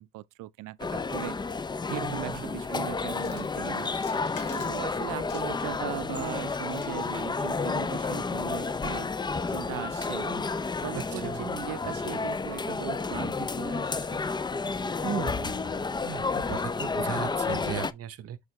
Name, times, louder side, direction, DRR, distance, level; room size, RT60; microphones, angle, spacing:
voice 1, 0.0-1.4 1.9-4.0 4.5-9.1 9.5-10.4 10.8-14.2, right 18 dB, 85° right, 0.5 m, -39 dB
sound 1, 0.8-17.9, left 4 dB, 15° left, 0.4 m, -31 dB
voice 2, 1.9-2.6 10.9-11.5 15.0-18.4, right 10 dB, 50° right, 0.7 m, -37 dB
sound 2, 3.2-3.5 3.9-4.9 5.3-5.8 6.5-7.1, left 7 dB, 90° left, 1.3 m, -48 dB
6.6 x 4.9 x 3.0 m
cardioid pair, 90°, 30 cm